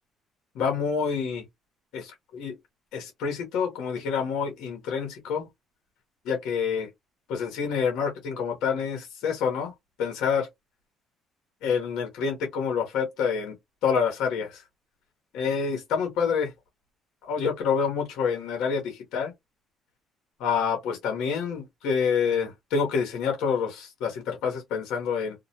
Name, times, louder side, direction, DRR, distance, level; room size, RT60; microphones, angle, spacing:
voice 1, 0.5-1.4 1.9-2.5 2.9-5.5 6.2-6.9 7.3-9.7 10.0-10.5 11.6-13.5 13.8-14.6 15.3-16.5 17.2-19.3 20.4-25.3, left 6 dB, 80° left, 0.9 m, -27 dB
2.2 x 2.1 x 2.8 m
supercardioid pair, 70°, 0 cm